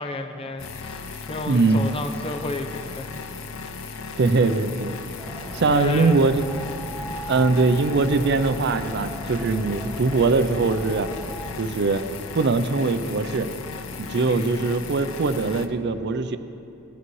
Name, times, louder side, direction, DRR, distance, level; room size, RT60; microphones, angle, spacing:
voice 1, 0.0-3.2 5.7-6.5 14.3-14.6, left 2 dB, 30° left, 6 dB, 0.6 m, -32 dB
sound 1, 0.6-15.7, left 4 dB, 75° left, 0.6 m, -36 dB
voice 2, 1.5-1.9 4.2-5.0 5.5-6.4 7.3-11.1 11.6-12.0 12.3-13.5 14.0-16.4, right 3 dB, 55° right, 10 dB, 0.5 m, -21 dB
sound 2, 5.2-11.5, equal, 5° left, 1.2 m, -37 dB
16.5 x 11.0 x 3.1 m, 2.8 s
head